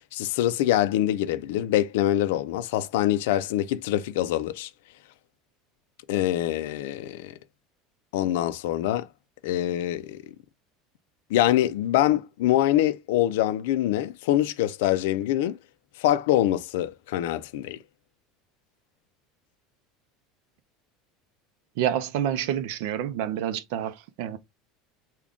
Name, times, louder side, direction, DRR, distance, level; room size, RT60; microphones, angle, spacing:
voice 1, 0.1-4.7 6.1-7.4 8.1-9.1 9.4-10.2 11.3-15.6 16.0-17.8, left 13 dB, 80° left, 0.4 m, -24 dB
voice 2, 21.8-24.4, right 10 dB, 60° right, 0.5 m, -28 dB
3.7 x 2.2 x 3.5 m
cardioid pair, 175°, 0 cm